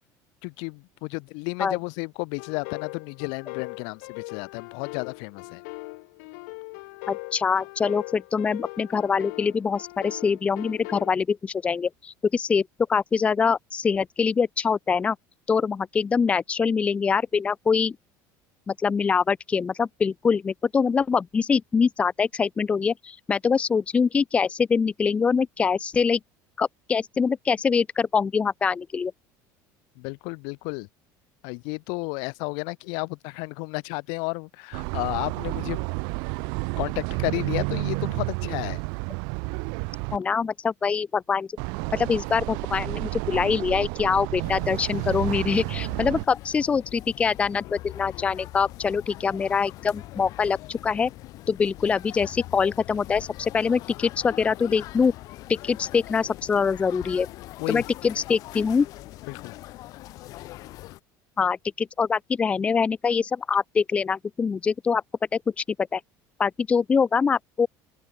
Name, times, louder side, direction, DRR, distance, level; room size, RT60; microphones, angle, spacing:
voice 1, 0.4-5.6 30.0-30.9 31.4-35.8 36.8-38.8 57.6-57.8 59.3-59.5, left 36 dB, 65° left, 1.0 m, -32 dB
sound 1, 2.4-11.1, left 29 dB, 90° left, 0.9 m, -40 dB
voice 2, 7.1-15.2 15.5-18.0 18.7-26.2 26.6-29.1 40.1-41.5 41.9-51.1 51.5-55.1 55.5-57.3 57.7-58.9 61.4-65.0 65.6-65.7 65.9-66.0 66.4-67.7, left 5 dB, 15° left, 0.7 m, -24 dB
sound 2, 34.7-40.2 41.6-46.3, right 37 dB, 60° right, 0.4 m, -30 dB
sound 3, 44.4-61.0, left 17 dB, 45° left, 1.3 m, -42 dB
open air
cardioid pair, 180°, 9 cm